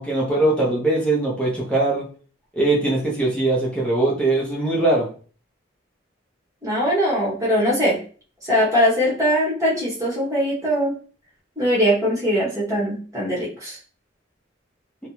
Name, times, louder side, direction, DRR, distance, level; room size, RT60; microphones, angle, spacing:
voice 1, 0.0-2.1 2.5-5.1, right 2 dB, 5° left, -6 dB, 0.6 m, -21 dB
voice 2, 6.6-8.0 8.4-10.9 11.6-13.8, equal, 15° right, -7 dB, 0.9 m, -21 dB
2.5 x 2.1 x 2.9 m, 0.41 s
head